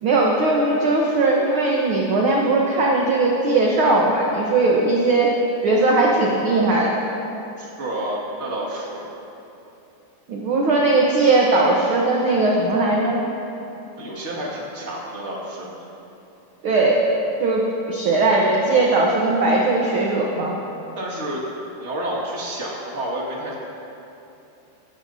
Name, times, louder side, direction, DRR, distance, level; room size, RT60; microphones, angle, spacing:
voice 1, 0.0-5.3 5.6-7.0 10.3-13.2 16.6-17.0 17.4-20.6, right 2 dB, 65° right, -2 dB, 1.4 m, -19 dB
voice 2, 7.6-9.1 14.0-15.9 21.0-21.4 21.8-23.5, right 1 dB, 25° right, -4 dB, 1.8 m, -30 dB
16.5 x 14.0 x 2.7 m, 2.9 s
omnidirectional pair, 3.6 m